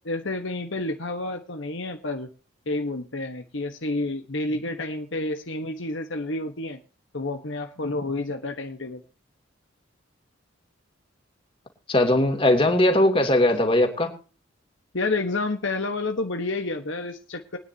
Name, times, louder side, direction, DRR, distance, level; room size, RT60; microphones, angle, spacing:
voice 1, 0.0-2.3 2.7-6.8 7.1-9.0 14.9-17.6, left 2 dB, 65° left, 5 dB, 1.3 m, -29 dB
voice 2, 11.9-14.1, left 1 dB, 25° left, 4 dB, 2.8 m, -19 dB
23.0 x 9.8 x 2.8 m, 0.36 s
head